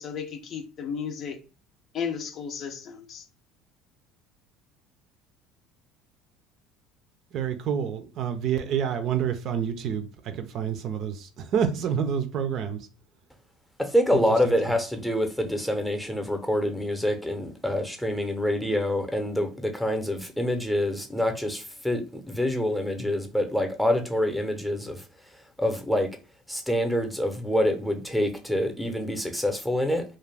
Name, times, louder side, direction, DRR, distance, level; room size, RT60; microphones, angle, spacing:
voice 1, 0.0-1.4 1.9-3.2, left 7 dB, 50° left, 0.5 m, -34 dB
voice 2, 7.3-10.1 10.3-12.8 14.1-14.5, right 8 dB, 60° right, 0.4 m, -28 dB
voice 3, 13.8-25.0 25.6-26.1 26.5-30.0, left 1 dB, 5° left, 0.7 m, -26 dB
2.4 x 2.2 x 3.2 m
supercardioid pair, 90°, 0 cm